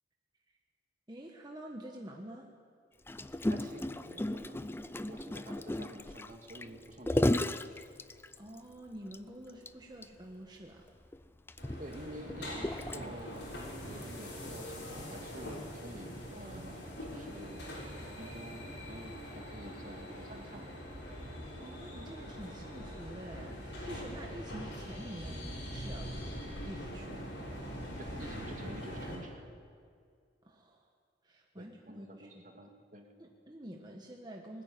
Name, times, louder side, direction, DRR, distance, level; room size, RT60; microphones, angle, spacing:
voice 1, 1.1-2.5 8.1-10.9 21.6-26.1 26.6-27.3 30.4-30.9 31.2-32.4 33.2-34.6, right 1 dB, 25° right, 1 dB, 1.3 m, -47 dB
Gurgling, 3.1-8.6 9.1-9.2 9.5-9.7 10.0-10.1 10.9-13.4 14.0-14.2, left 1 dB, 15° left, 0.5 m, -34 dB
voice 2, 3.5-7.4 11.8-17.7 18.2-20.8 28.0-29.5 31.6-33.1, right 1 dB, 45° right, 3 dB, 2.1 m, -49 dB
sound 1, 11.6-29.2, equal, 75° left, 7.1 m, -43 dB
20.0 x 14.0 x 9.4 m, 2.2 s
head